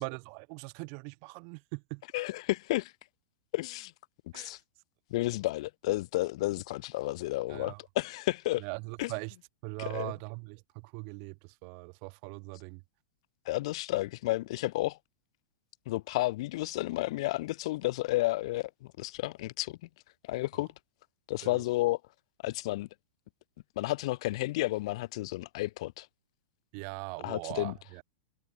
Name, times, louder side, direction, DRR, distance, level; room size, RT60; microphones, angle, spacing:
voice 1, 0.0-2.0 4.3-4.6 7.5-7.8 8.6-9.3 9.6-12.8 21.4-21.6 26.7-28.0, right 40 dB or more, 50° right, 5.7 m, -41 dB
voice 2, 2.1-2.9 3.5-3.9 4.3-4.6 5.1-8.6 9.0-9.1 9.8-10.1 13.5-15.0 15.9-18.7 19.0-19.8 20.2-20.7 21.3-22.0 22.4-22.9 23.8-26.1 27.2-27.8, left 18 dB, 60° left, 3.9 m, -31 dB
hypercardioid pair, 120°, 4 cm